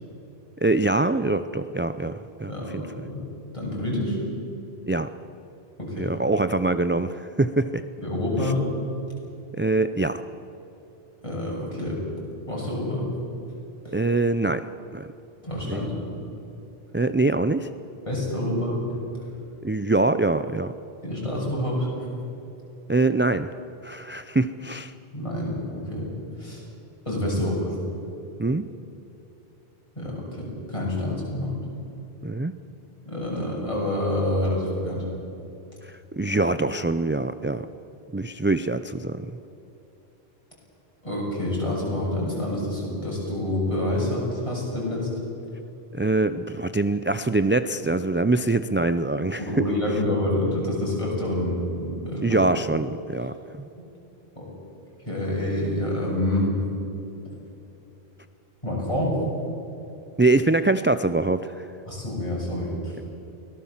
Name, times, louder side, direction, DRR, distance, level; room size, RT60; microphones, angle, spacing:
voice 1, 0.6-2.8 4.9-5.1 6.0-7.8 8.4-8.5 9.6-10.2 13.9-15.1 15.7-15.8 16.9-17.7 19.6-20.7 22.9-23.5 23.8-24.9 28.4-28.7 32.2-32.5 35.8-37.7 38.1-39.3 45.9-49.4 52.2-53.7 60.2-61.5, right 2 dB, 20° right, 11 dB, 0.3 m, -24 dB
voice 2, 2.5-3.3 3.5-4.2 5.8-6.1 8.0-8.7 11.2-12.0 12.5-13.1 15.4-15.9 18.1-18.8 21.0-22.1 25.1-26.6 27.1-27.8 30.0-31.6 33.1-35.1 41.0-45.1 49.4-52.5 54.4-54.5 55.1-56.5 58.6-59.2 61.9-62.9, left 1 dB, 30° left, -4 dB, 7.6 m, -27 dB
24.0 x 18.0 x 7.4 m, 2.9 s
omnidirectional pair, 1.0 m